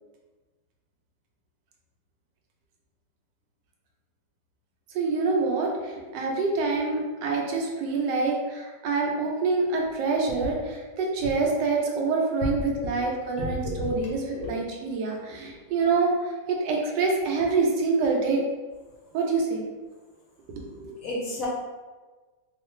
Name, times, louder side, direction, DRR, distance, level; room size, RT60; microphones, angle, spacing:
voice 1, 4.9-18.4 19.1-19.6 20.5-21.0, right 4 dB, 70° right, 0 dB, 1.2 m, -26 dB
voice 2, 13.4-13.9 14.3-14.6 21.0-21.5, left 1 dB, 60° left, -5 dB, 1.0 m, -31 dB
3.0 x 2.3 x 3.1 m, 1.3 s
omnidirectional pair, 2.0 m